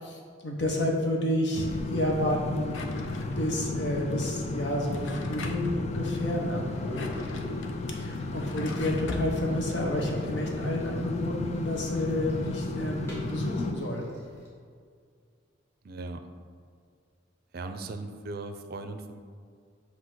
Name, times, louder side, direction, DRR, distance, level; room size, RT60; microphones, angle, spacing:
voice 1, 0.0-2.8 3.4-6.7 7.9-14.1, left 1 dB, 65° left, 0 dB, 1.1 m, -30 dB
sound 1, 1.5-13.7, left 2 dB, 35° left, 0.3 m, -34 dB
Drawer open or close, 2.7-3.7 4.7-5.8 6.7-9.3, left 2 dB, 85° left, 0.6 m, -41 dB
sound 2, 6.0-14.5, left 1 dB, 15° left, 1.7 m, -46 dB
voice 2, 8.1-8.6 15.8-16.2 17.5-19.2, right 2 dB, 55° right, 8 dB, 0.4 m, -39 dB
7.8 x 2.9 x 6.1 m, 2.2 s
head